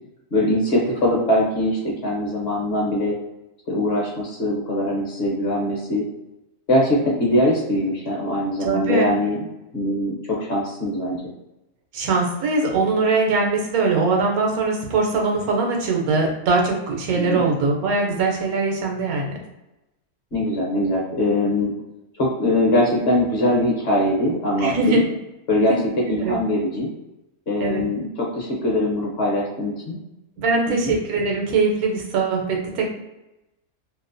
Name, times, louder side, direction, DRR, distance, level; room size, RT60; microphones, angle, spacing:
voice 1, 0.3-3.1 3.7-6.0 6.7-9.4 9.7-11.2 17.2-17.4 20.3-21.7 22.2-25.0 25.5-25.7 26.1-26.9 27.5-30.0 30.7-30.9, left 1 dB, 55° left, -4 dB, 0.8 m, -22 dB
voice 2, 8.6-9.1 11.9-19.4 24.6-25.0 26.2-26.4 27.6-27.8 30.4-32.9, right 3 dB, 85° right, 0 dB, 1.1 m, -21 dB
2.7 x 2.1 x 2.5 m, 0.94 s
omnidirectional pair, 1.5 m